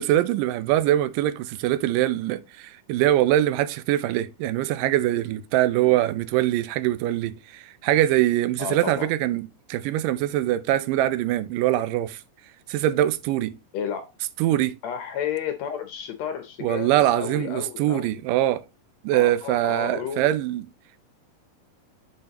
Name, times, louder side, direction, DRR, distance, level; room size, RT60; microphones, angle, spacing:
voice 1, 0.0-12.2 12.7-13.6 14.4-14.8 16.6-18.6 19.0-20.7, right 13 dB, 85° right, 2.2 m, -23 dB
voice 2, 8.6-9.1 13.7-14.0 14.8-18.2 19.1-20.3, left 8 dB, 75° left, 1.7 m, -32 dB
6.5 x 6.4 x 2.9 m
omnidirectional pair, 3.8 m